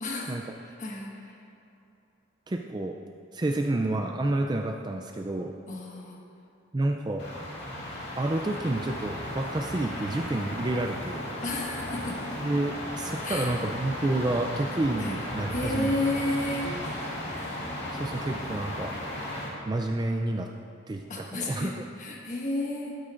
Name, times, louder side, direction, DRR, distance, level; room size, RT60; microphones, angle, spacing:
voice 1, 0.0-1.4 5.7-6.2 11.4-12.2 13.2-13.5 14.0-14.1 15.0-15.2 15.5-16.7 21.1-23.0, left 2 dB, 35° left, -1 dB, 1.4 m, -32 dB
voice 2, 2.5-3.0 3.3-5.5 6.7-7.3 8.2-11.3 12.4-15.9 16.6-16.9 17.9-18.9 19.7-20.5 20.9-21.8, right 2 dB, 20° right, 3 dB, 0.3 m, -29 dB
sound 1, 7.2-19.5, left 1 dB, 55° left, 2.4 m, -35 dB
12.5 x 12.5 x 2.5 m, 2.9 s
head